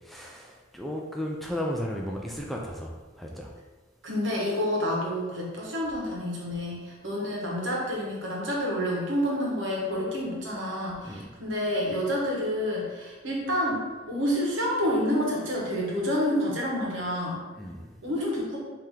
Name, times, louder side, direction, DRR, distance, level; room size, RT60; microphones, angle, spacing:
voice 1, 0.0-3.5 11.0-11.3 17.6-18.0, equal, ahead, -2 dB, 0.4 m, -35 dB
voice 2, 4.0-13.8 14.1-17.4 18.0-18.6, equal, 70° right, -4 dB, 1.4 m, -28 dB
4.9 x 2.9 x 3.7 m, 1.3 s
head